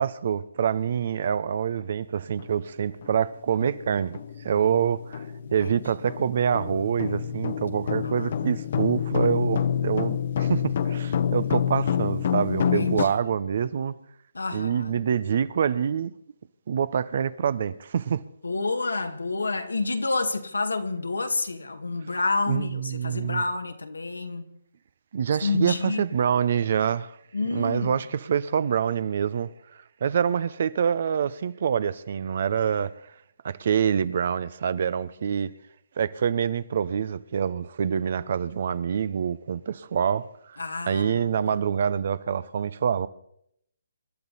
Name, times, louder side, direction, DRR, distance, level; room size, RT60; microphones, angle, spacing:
voice 1, 0.0-5.3 5.5-14.0 14.5-16.1 16.7-18.2 22.5-23.4 25.1-27.2 27.5-32.9 33.4-35.5 36.0-43.1, right 8 dB, 50° right, 0.8 m, -26 dB
sound 1, 2.4-2.5 3.0-3.2 3.6-13.1, left 9 dB, 50° left, 1.0 m, -28 dB
voice 2, 8.0-8.4 11.4-11.5 12.7-13.4 14.3-15.0 18.4-24.5 25.4-26.0 27.3-28.0 40.6-41.5, left 3 dB, 85° left, 1.9 m, -29 dB
27.0 x 12.0 x 4.1 m
figure-of-eight pair, 145°, 0 cm